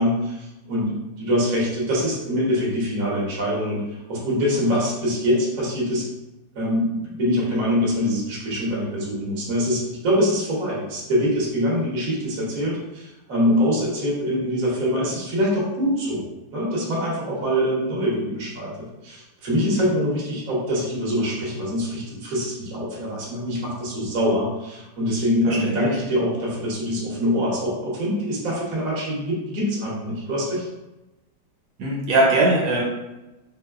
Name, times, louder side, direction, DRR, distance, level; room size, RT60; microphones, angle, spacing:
voice 1, 0.0-3.8 4.1-6.1 6.5-30.6, equal, 50° right, -5 dB, 1.3 m, -24 dB
voice 2, 25.4-25.9 31.8-32.8, right 2 dB, 85° right, -3 dB, 1.6 m, -20 dB
4.8 x 2.1 x 2.3 m, 1.0 s
omnidirectional pair, 2.0 m